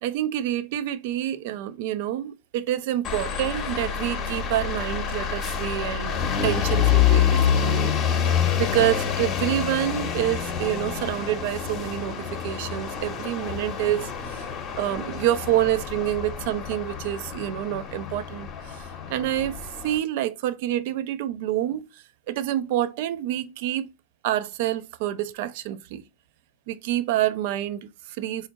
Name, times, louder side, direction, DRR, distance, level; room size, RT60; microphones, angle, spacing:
voice 1, 0.0-8.3 8.6-14.5 14.8-23.9 24.2-26.0 26.7-28.5, right 13 dB, 50° right, 0.4 m, -27 dB
sound 1, 3.0-20.0, left 8 dB, 30° left, 0.8 m, -27 dB
4.2 x 2.5 x 3.9 m
figure-of-eight pair, 90°, 0 cm